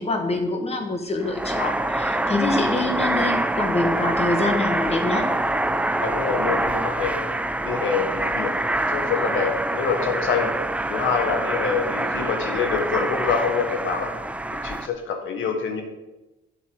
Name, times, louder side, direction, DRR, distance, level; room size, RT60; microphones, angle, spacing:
voice 1, 0.0-5.3, left 2 dB, 30° left, 4 dB, 1.8 m, -25 dB
sound 1, 1.2-14.9, right 1 dB, 5° right, 0.5 m, -25 dB
voice 2, 6.0-7.2 7.6-8.5 8.9-10.5 10.9-14.1 14.6-15.8, left 5 dB, 80° left, 4 dB, 1.6 m, -26 dB
7.9 x 7.5 x 5.5 m, 1.0 s
cardioid pair, 90°, 20 cm